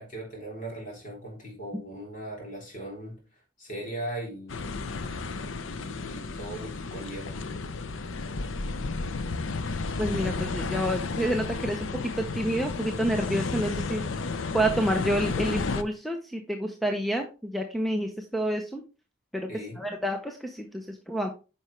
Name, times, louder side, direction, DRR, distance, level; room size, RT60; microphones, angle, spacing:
voice 1, 0.0-3.2 3.6-4.8 5.7-7.4 19.5-19.8, right 1 dB, 40° left, 3.6 m, -39 dB
sound 1, 4.5-15.8, left 3 dB, 80° left, 0.6 m, -32 dB
voice 2, 10.0-14.0 14.5-18.8 19.3-19.5 19.8-21.3, right 1 dB, ahead, 0.7 m, -29 dB
9.6 x 5.6 x 3.3 m
head